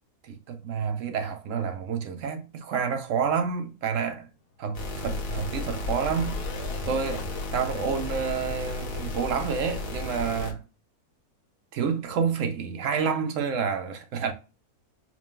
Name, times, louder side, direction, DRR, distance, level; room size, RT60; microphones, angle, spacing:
voice 1, 0.2-4.3 4.6-6.4 6.9-10.6 11.7-14.3, right 6 dB, 70° right, 0.8 m, -29 dB
sound 1, 4.5-8.2, left 4 dB, 85° left, 1.3 m, -44 dB
sound 2, 4.7-10.5, left 2 dB, 60° left, 1.3 m, -33 dB
4.8 x 2.2 x 3.6 m
omnidirectional pair, 1.6 m